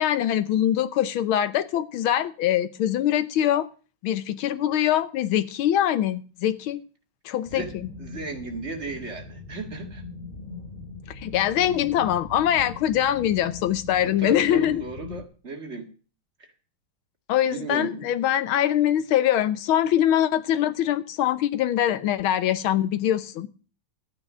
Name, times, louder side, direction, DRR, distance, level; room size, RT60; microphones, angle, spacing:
voice 1, 0.0-3.7 4.0-6.8 7.2-7.9 11.1-14.8 17.3-23.5, left 11 dB, 80° left, 1.7 m, -23 dB
sound 1, 7.5-15.3, left 3 dB, 25° left, 3.4 m, -40 dB
voice 2, 8.0-10.0 14.0-15.9 16.4-16.5 17.4-18.1, right 3 dB, 35° right, 2.1 m, -35 dB
12.5 x 9.0 x 6.1 m
omnidirectional pair, 2.3 m